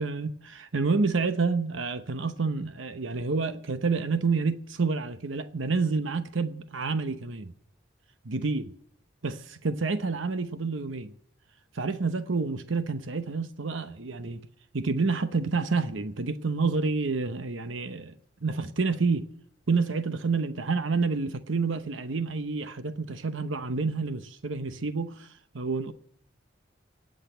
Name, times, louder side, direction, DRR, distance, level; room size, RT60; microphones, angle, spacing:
voice 1, 0.0-7.5 8.2-8.7 9.2-11.1 11.7-14.4 14.7-18.1 18.4-19.3 19.7-25.9, right 4 dB, 85° right, 0.9 m, -28 dB
18.5 x 6.5 x 9.0 m
head